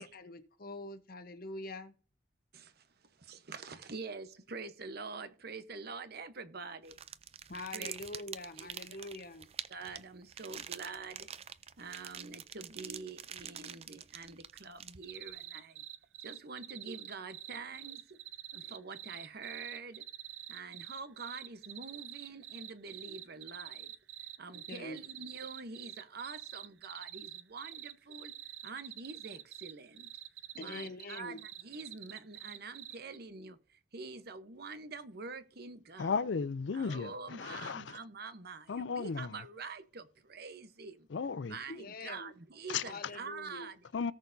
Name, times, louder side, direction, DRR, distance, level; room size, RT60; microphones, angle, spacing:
voice 1, 0.0-1.9 7.5-9.5 24.7-25.0 30.6-31.4 41.7-42.3 42.7-43.7, left 2 dB, 55° left, 1.0 m, -44 dB
voice 2, 2.5-2.9 3.2-7.0 7.7-8.0 8.6-9.0 9.7-11.3 11.8-15.8 16.2-18.2 18.5-20.0 20.5-23.9 24.4-28.3 28.6-30.1 30.5-36.1 36.7-41.1 41.4-43.8, right 4 dB, 60° right, 1.0 m, -46 dB
sound 1, 6.9-15.3, right 8 dB, 35° right, 0.5 m, -46 dB
sound 2, 15.0-33.2, right 13 dB, 75° right, 0.6 m, -46 dB
voice 3, 36.0-38.0 38.7-39.4 41.1-41.6 42.7-42.8 43.9-44.1, left 5 dB, 70° left, 0.5 m, -35 dB
18.0 x 6.4 x 2.7 m
head